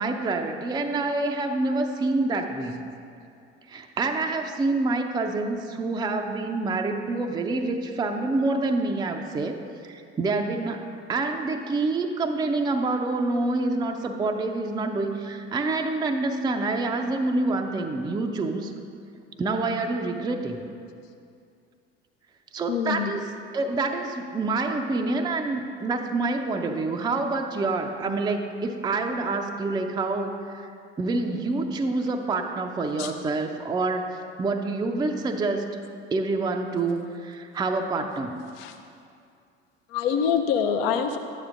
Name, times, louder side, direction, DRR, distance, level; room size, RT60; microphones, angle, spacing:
voice 1, 0.0-2.9 3.7-9.5 9.8-18.7 19.4-20.6 22.5-23.2 23.5-30.7 31.0-34.1 34.4-35.7 36.1-38.4, right 3 dB, 10° right, 4 dB, 0.5 m, -27 dB
voice 2, 22.7-23.1 33.0-33.1 38.5-38.7 39.9-41.2, left 7 dB, 60° left, 5 dB, 0.6 m, -25 dB
11.0 x 8.8 x 2.5 m, 2.4 s
figure-of-eight pair, 65°, 34 cm